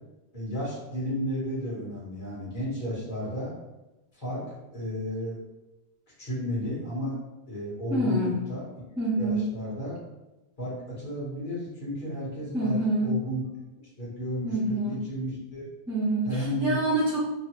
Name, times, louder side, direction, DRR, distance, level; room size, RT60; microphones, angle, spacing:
voice 1, 0.3-3.5 4.1-5.4 6.2-7.1 7.5-8.6 9.2-10.0 10.6-13.4 14.0-15.7 16.2-16.8, equal, 50° left, -8 dB, 1.4 m, -33 dB
voice 2, 7.9-8.5 9.0-9.5 12.5-13.2 14.4-15.0 15.9-17.2, right 1 dB, 5° right, -10 dB, 0.6 m, -26 dB
3.1 x 2.2 x 2.9 m, 1.0 s
omnidirectional pair, 1.0 m